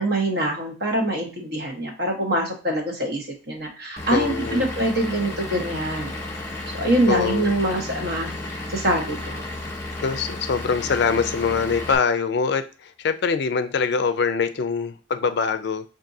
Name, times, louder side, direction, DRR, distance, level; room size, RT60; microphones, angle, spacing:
voice 1, 0.0-6.4 6.8-8.3 8.7-9.4, right 1 dB, 55° right, 1 dB, 1.1 m, -24 dB
Vehicle / Engine, 4.0-12.0, left 2 dB, 15° left, 0.7 m, -33 dB
voice 2, 4.1-4.7 7.1-7.5 10.0-15.8, left 5 dB, 60° left, 11 dB, 0.4 m, -23 dB
5.8 x 2.6 x 2.6 m, 0.35 s
head